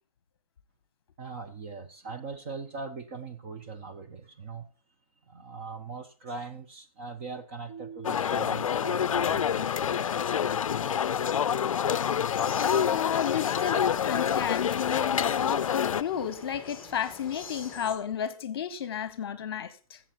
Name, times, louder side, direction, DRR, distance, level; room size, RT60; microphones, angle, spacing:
voice 1, 1.2-4.7 5.3-10.4, right 4 dB, 20° right, 0.7 m, -41 dB
sound 1, 7.7-9.8, right 7 dB, 40° right, 2.9 m, -48 dB
sound 2, 8.0-16.0, left 8 dB, 65° left, 0.5 m, -27 dB
sound 3, 12.3-18.0, left 5 dB, 5° left, 1.5 m, -45 dB
voice 2, 12.5-20.0, left 8 dB, 40° left, 1.1 m, -32 dB
15.0 x 7.1 x 4.4 m
hypercardioid pair, 165°, 18 cm